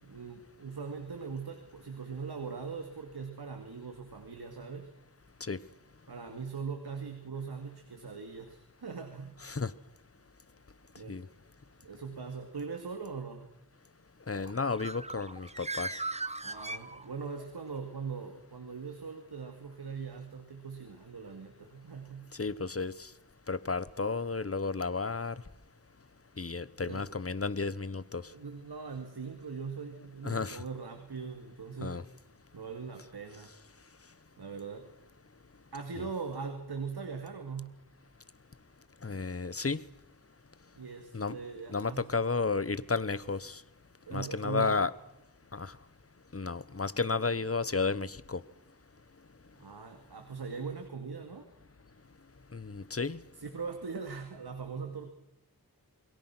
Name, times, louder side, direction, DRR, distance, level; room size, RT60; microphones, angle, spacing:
voice 1, 0.0-4.9 6.1-9.4 10.9-11.2 11.8-13.5 16.4-22.3 26.8-27.0 28.3-32.0 32.5-33.5 34.4-34.9 35.7-37.8 40.7-42.1 44.1-44.8 49.6-51.5 53.4-55.1, right 5 dB, 85° right, 2.5 m, -41 dB
voice 2, 9.4-9.7 11.1-11.3 14.3-16.0 22.4-23.1 23.5-25.3 26.4-28.2 30.2-30.6 31.8-32.0 36.0-36.1 39.0-39.8 41.1-41.4 41.7-43.6 44.1-44.9 45.5-45.7 46.3-48.4 52.5-53.2, left 4 dB, 35° left, 1.1 m, -32 dB
Bird, 14.4-17.4, right 2 dB, 15° right, 1.0 m, -39 dB
28.5 x 21.5 x 6.2 m
wide cardioid pair, 60°, 38 cm